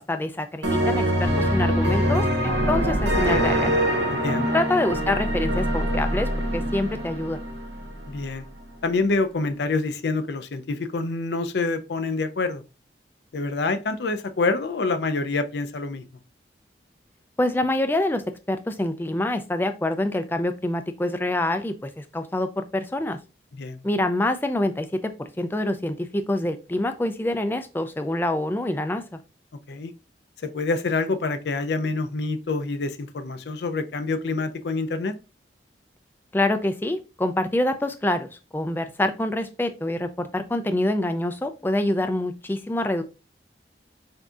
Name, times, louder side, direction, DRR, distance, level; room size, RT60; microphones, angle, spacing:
voice 1, 0.0-3.7 4.5-7.4 17.4-18.2 18.5-23.2 23.8-29.2 36.3-38.3 38.5-43.0, left 1 dB, 10° left, 0.3 m, -26 dB
sound 1, 0.6-8.3, equal, 75° right, 0.8 m, -24 dB
voice 2, 4.1-4.5 8.1-8.4 8.8-12.6 13.3-16.0 23.6-23.8 29.7-29.9 30.4-35.1, left 3 dB, 70° left, 0.5 m, -26 dB
6.0 x 2.7 x 2.4 m
head